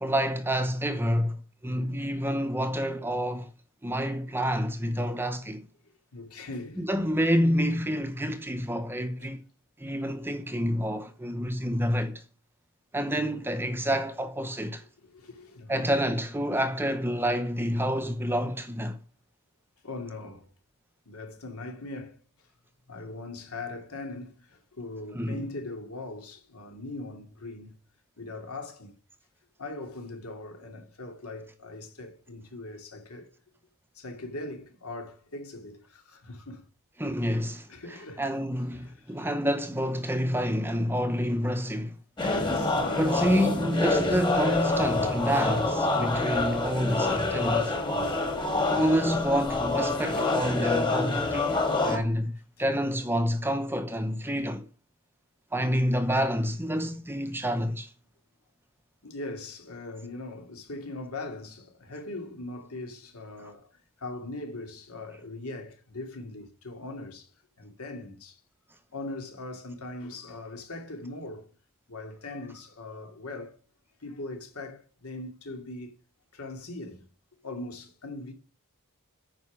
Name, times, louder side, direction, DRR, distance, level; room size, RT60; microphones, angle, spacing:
voice 1, 0.0-3.5 3.8-5.7 6.8-9.4 9.8-12.2 12.9-14.8 15.7-19.0 25.1-25.4 37.0-42.0 43.0-47.7 48.7-54.7 55.5-57.9 63.4-63.5, equal, 10° right, 0.8 m, -28 dB
voice 2, 1.6-2.0 6.1-6.8 9.2-9.3 15.0-15.9 19.8-20.5 21.1-22.2 22.9-27.7 28.2-28.9 29.6-33.3 33.9-36.6 37.7-38.2 38.7-39.1 42.3-42.8 59.0-63.7 64.0-67.3 67.6-68.4 68.9-71.5 71.9-73.6 74.0-75.9 76.3-77.0 77.4-78.3, left 2 dB, 75° left, 2.6 m, -40 dB
sound 1, 42.2-52.0, left 2 dB, 20° left, 1.8 m, -27 dB
9.3 x 5.5 x 7.3 m
head